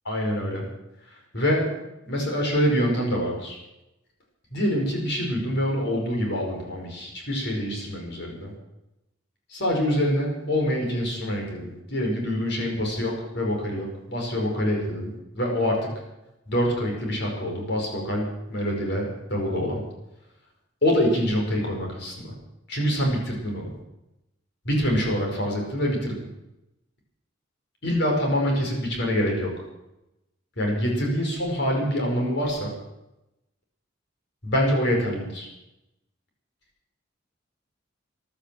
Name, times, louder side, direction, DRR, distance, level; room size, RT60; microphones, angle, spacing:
voice 1, 0.0-0.7 1.3-1.7 2.0-3.6 4.5-8.5 9.5-15.9 16.5-19.8 20.8-22.3 22.7-23.7 24.6-26.2 27.8-29.5 30.6-32.7 34.4-35.5, equal, 60° left, 0 dB, 5.2 m, -25 dB
15.0 x 11.5 x 7.6 m, 0.91 s
head